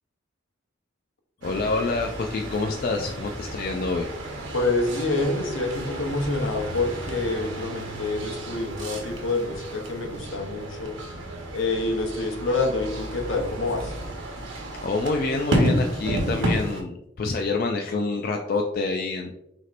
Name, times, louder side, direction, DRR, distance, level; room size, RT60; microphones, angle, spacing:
voice 1, 1.4-4.1 14.7-19.3, left 3 dB, 45° left, 2 dB, 0.3 m, -27 dB
sound 1, 1.4-16.8, right 1 dB, 75° right, 1.0 m, -32 dB
voice 2, 4.5-11.0 11.5-13.9, left 2 dB, 80° left, 2 dB, 0.8 m, -27 dB
6.1 x 2.9 x 2.5 m, 0.82 s
head